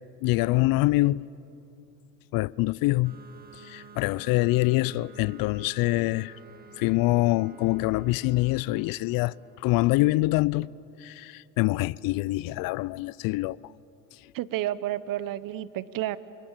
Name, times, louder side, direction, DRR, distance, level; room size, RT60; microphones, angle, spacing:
voice 1, 0.2-1.3 2.3-3.2 3.6-6.3 6.8-9.3 9.6-10.7 11.0-13.6, left 20 dB, 60° left, 0.5 m, -25 dB
sound 1, 3.0-10.4, right 3 dB, 20° right, 2.5 m, -51 dB
voice 2, 14.3-16.2, right 13 dB, 55° right, 1.1 m, -30 dB
29.0 x 26.5 x 7.4 m
supercardioid pair, 85°, 40 cm